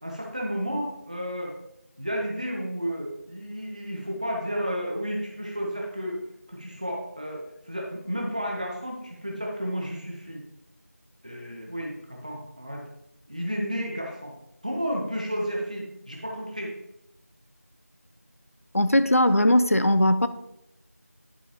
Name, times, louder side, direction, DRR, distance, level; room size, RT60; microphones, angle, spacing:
voice 1, 0.0-1.5 2.0-6.2 6.5-10.4 11.2-12.8 13.3-14.3 14.6-16.7, equal, 25° right, 1.2 m, -32 dB
voice 2, 18.7-20.3, left 1 dB, 60° left, 0.5 m, -19 dB
11.0 x 5.3 x 3.0 m
figure-of-eight pair, 175°, 9 cm